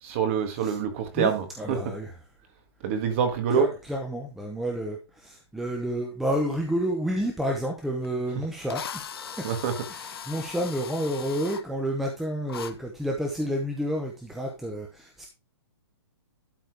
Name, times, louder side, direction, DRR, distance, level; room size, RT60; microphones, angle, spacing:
voice 1, 0.0-2.0 2.8-3.7 9.4-9.9, right 6 dB, 30° right, 1.8 m, -26 dB
voice 2, 1.6-2.1 3.5-9.5 9.9-15.3, equal, ahead, 0.8 m, -30 dB
Drill, 8.0-8.1 8.7-11.6 12.5-12.7, left 8 dB, 65° left, 1.2 m, -39 dB
12.0 x 4.2 x 4.7 m
hypercardioid pair, 170°, 14 cm